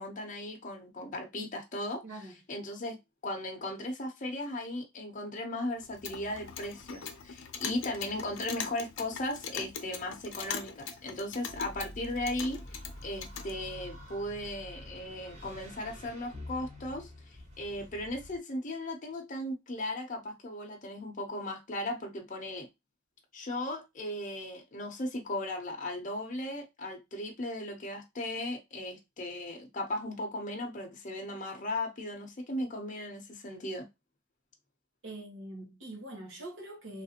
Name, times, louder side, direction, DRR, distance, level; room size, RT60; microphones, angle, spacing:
voice 1, 0.0-2.0 2.5-3.0 3.2-12.6 13.0-17.1 17.6-22.7 23.3-33.8, left 1 dB, 40° left, 0.7 m, -37 dB
voice 2, 2.0-2.4 35.0-37.0, right 1 dB, 70° right, 1.0 m, -43 dB
Clock, 5.8-13.5, left 6 dB, 85° left, 0.5 m, -42 dB
sound 1, 11.5-18.4, left 1 dB, 35° right, 1.2 m, -47 dB
3.4 x 2.5 x 2.8 m
head